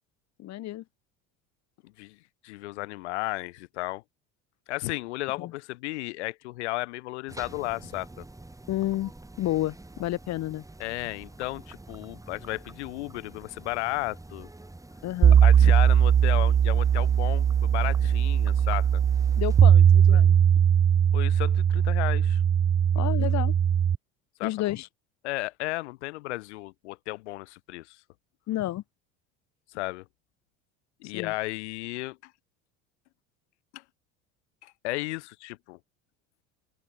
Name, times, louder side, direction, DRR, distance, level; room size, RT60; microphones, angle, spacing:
voice 1, 0.4-0.8 5.4-5.5 8.7-9.1 9.4-10.6 15.0-15.4 19.4-20.4 22.9-23.5 24.4-24.9 28.5-28.8 31.0-31.3, left 15 dB, 55° left, 2.1 m, -30 dB
voice 2, 1.8-2.2 2.4-4.0 4.7-8.2 10.8-14.5 15.4-19.0 20.1-20.2 21.1-22.4 24.4-24.5 25.2-28.0 29.7-30.0 31.0-32.3 33.7-33.8 34.6-35.8, left 20 dB, 85° left, 3.7 m, -34 dB
sound 1, 7.3-19.7, right 2 dB, 10° right, 7.1 m, -47 dB
sound 2, 15.2-24.0, right 8 dB, 30° right, 1.3 m, -20 dB
open air
supercardioid pair, 90°, 33 cm